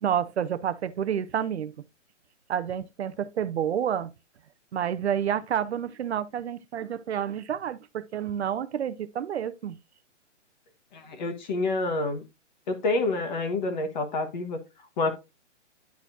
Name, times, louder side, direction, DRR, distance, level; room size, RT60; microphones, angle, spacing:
voice 1, 0.0-1.7 2.5-4.1 4.7-9.8, right 9 dB, 60° right, 0.6 m, -29 dB
voice 2, 10.9-12.2 12.7-14.6 15.0-15.1, left 2 dB, 35° left, 1.4 m, -28 dB
10.5 x 4.2 x 2.7 m
hypercardioid pair, 160°, 37 cm